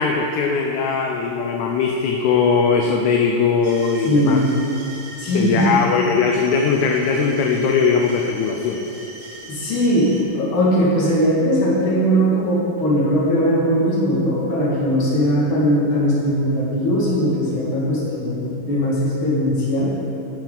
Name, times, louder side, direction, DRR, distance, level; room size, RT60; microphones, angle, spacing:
voice 1, 0.0-4.4 5.3-8.8, left 5 dB, 75° left, 1 dB, 1.8 m, -19 dB
sound 1, 3.6-10.2, right 2 dB, 55° right, 2.1 m, -40 dB
voice 2, 4.0-4.5 5.2-5.8 9.5-19.9, equal, 40° left, -6 dB, 2.7 m, -19 dB
13.5 x 9.2 x 4.0 m, 2.8 s
omnidirectional pair, 3.9 m